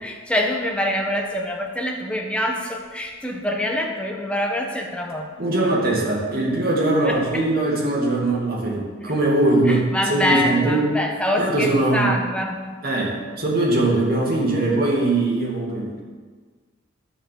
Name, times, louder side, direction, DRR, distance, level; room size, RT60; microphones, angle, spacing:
voice 1, 0.0-5.3 7.0-7.5 9.7-12.8, equal, 5° left, 1 dB, 1.2 m, -25 dB
voice 2, 5.4-10.9 11.4-12.2 12.8-16.0, right 2 dB, 50° right, -2 dB, 2.5 m, -21 dB
11.0 x 7.1 x 6.8 m, 1.5 s
head